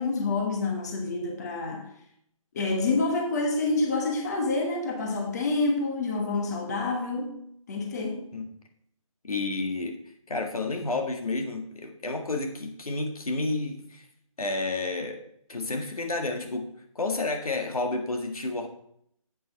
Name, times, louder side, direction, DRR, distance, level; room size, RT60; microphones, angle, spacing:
voice 1, 0.0-1.9 2.5-7.4 7.7-8.3, left 3 dB, 30° left, 2 dB, 1.2 m, -28 dB
voice 2, 9.2-10.0 10.3-14.1 14.4-15.2 15.5-16.7 16.9-18.7, left 3 dB, 85° left, 4 dB, 1.7 m, -30 dB
8.0 x 7.5 x 4.2 m, 0.68 s
hypercardioid pair, 165°, 18 cm